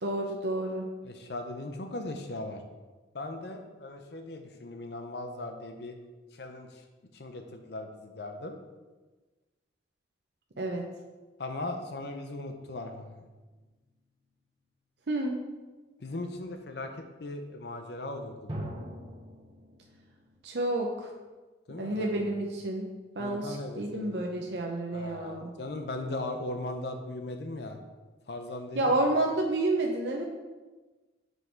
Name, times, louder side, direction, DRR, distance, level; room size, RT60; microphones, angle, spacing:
voice 1, 0.0-0.8 10.6-10.8 15.1-15.4 20.4-21.1 21.8-22.9 23.2-25.5 28.7-30.2, right 2 dB, 65° right, 1 dB, 0.7 m, -29 dB
voice 2, 1.0-2.6 3.1-6.0 6.3-6.8 7.1-8.6 11.4-13.2 16.0-18.6 21.7-22.3 23.2-24.5 24.9-27.8 28.3-28.9, left 2 dB, 60° left, 5 dB, 0.6 m, -38 dB
sound 1, 12.5-13.8 18.5-20.4, right 1 dB, 25° right, 1.1 m, -43 dB
6.1 x 5.4 x 4.5 m, 1.2 s
head